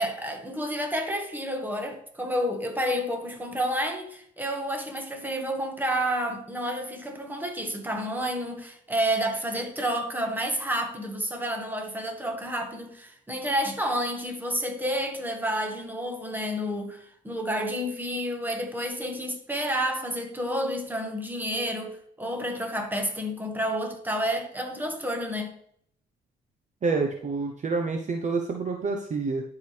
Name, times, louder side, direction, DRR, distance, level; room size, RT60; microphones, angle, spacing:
voice 1, 0.0-25.5, equal, 10° right, 1.6 m, -30 dB
voice 2, 26.8-29.4, right 4 dB, 35° right, 0.8 m, -28 dB
11.0 x 4.8 x 3.3 m
cardioid pair, 90°, 20 cm